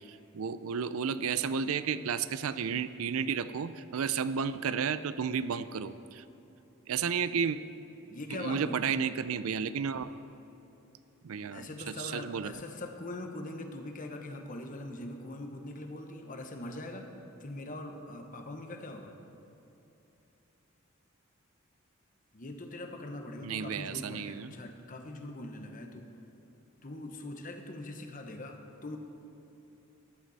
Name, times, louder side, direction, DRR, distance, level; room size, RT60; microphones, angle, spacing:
voice 1, 0.1-6.2 6.9-7.6 8.3-10.1 11.2-12.5 23.4-24.5, right 6 dB, 80° right, 14 dB, 0.5 m, -32 dB
voice 2, 8.1-8.9 11.5-17.1 17.4-19.1 22.3-26.1 26.8-29.0, left 1 dB, 40° left, 4 dB, 1.0 m, -42 dB
14.0 x 11.0 x 4.1 m, 2.9 s
head